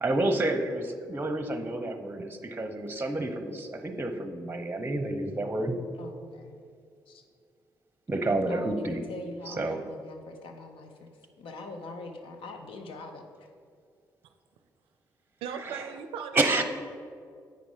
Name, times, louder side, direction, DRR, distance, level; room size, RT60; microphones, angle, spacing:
voice 1, 0.0-5.8 8.1-9.0 9.5-9.8 15.6-15.9 16.3-16.6, right 2 dB, 20° right, 7 dB, 0.8 m, -29 dB
voice 2, 6.0-6.5 7.1-7.2 8.5-11.1 11.4-13.2, left 2 dB, 75° left, 5 dB, 0.9 m, -43 dB
voice 3, 9.5-9.9 15.4-16.6, right 7 dB, 85° right, 8 dB, 0.4 m, -39 dB
8.1 x 5.2 x 4.9 m, 2.3 s
supercardioid pair, 50°, 9 cm